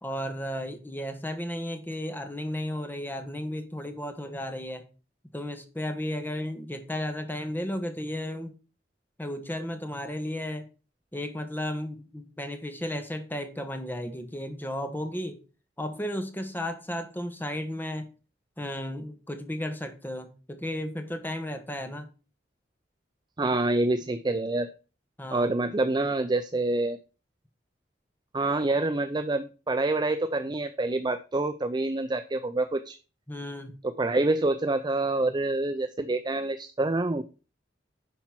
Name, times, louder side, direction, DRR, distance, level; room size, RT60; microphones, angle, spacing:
voice 1, 0.0-4.8 5.3-8.5 9.2-10.7 11.1-15.4 15.8-18.1 18.6-22.1 25.2-25.6 33.3-33.7, left 1 dB, 10° left, 7 dB, 1.4 m, -34 dB
voice 2, 23.4-24.7 25.3-27.0 28.3-33.0 34.0-37.2, right 2 dB, 25° right, 10 dB, 0.5 m, -27 dB
10.5 x 4.4 x 5.9 m, 0.34 s
head